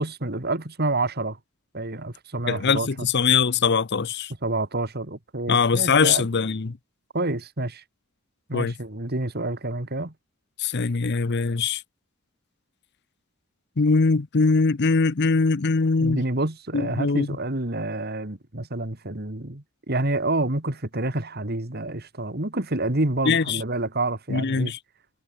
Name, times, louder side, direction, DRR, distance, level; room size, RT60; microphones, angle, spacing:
voice 1, 0.0-1.4 1.7-2.9 4.4-6.3 7.1-7.8 8.5-10.1 16.0-24.7, right 2 dB, 45° right, 2.4 m, -28 dB
voice 2, 2.5-4.3 5.5-6.8 8.5-8.7 10.6-11.8 13.8-16.2 16.7-17.3 23.3-23.6 24.3-24.8, left 4 dB, 50° left, 0.7 m, -22 dB
head